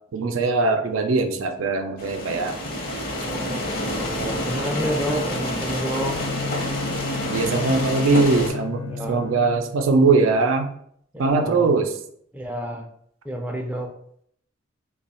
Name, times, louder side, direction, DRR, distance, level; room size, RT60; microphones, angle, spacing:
voice 1, 0.1-2.6 7.3-10.7 11.2-11.9, right 3 dB, 85° right, 6 dB, 0.4 m, -21 dB
sound 1, 2.0-8.5, equal, 50° left, 0.8 m, -28 dB
voice 2, 3.1-6.2 8.9-9.3 11.1-11.8 12.3-12.9 13.2-13.9, equal, 10° right, 2 dB, 0.4 m, -30 dB
Bowed string instrument, 5.8-9.9, left 5 dB, 70° left, 0.3 m, -33 dB
3.0 x 2.3 x 4.1 m, 0.66 s
head